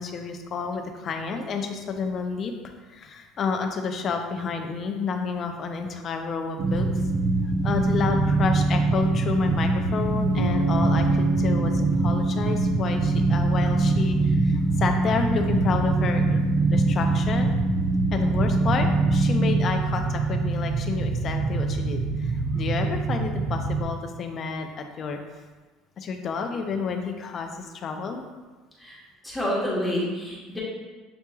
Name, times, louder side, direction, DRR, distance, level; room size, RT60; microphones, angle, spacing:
voice 1, 0.0-2.5 2.9-7.0 7.6-17.5 18.1-25.2 26.0-28.2, left 5 dB, 35° left, 4 dB, 0.4 m, -30 dB
sound 1, 6.6-23.8, right 2 dB, 55° right, 0.5 m, -23 dB
Bass guitar, 10.4-14.2, right 3 dB, 90° left, 0.5 m, -33 dB
voice 2, 29.2-30.6, equal, 5° left, -7 dB, 1.1 m, -28 dB
6.9 x 3.0 x 2.3 m, 1.3 s
cardioid pair, 160°, 0 cm